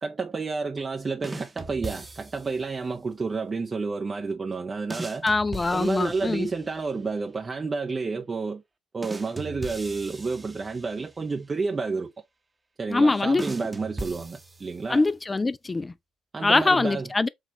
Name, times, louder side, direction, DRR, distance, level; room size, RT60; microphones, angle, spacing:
voice 1, 0.0-5.3 5.7-8.6 8.9-12.1 12.8-15.0 16.3-17.1, right 4 dB, 35° right, 0.6 m, -30 dB
sound 1, 1.2-2.6 4.9-6.9 9.0-11.2 13.4-15.0, right 2 dB, 20° right, 0.9 m, -39 dB
voice 2, 5.2-6.5 12.9-13.4 14.9-15.9 16.4-17.3, left 3 dB, 25° left, 0.3 m, -23 dB
6.2 x 2.4 x 2.9 m
hypercardioid pair, 55°, 0 cm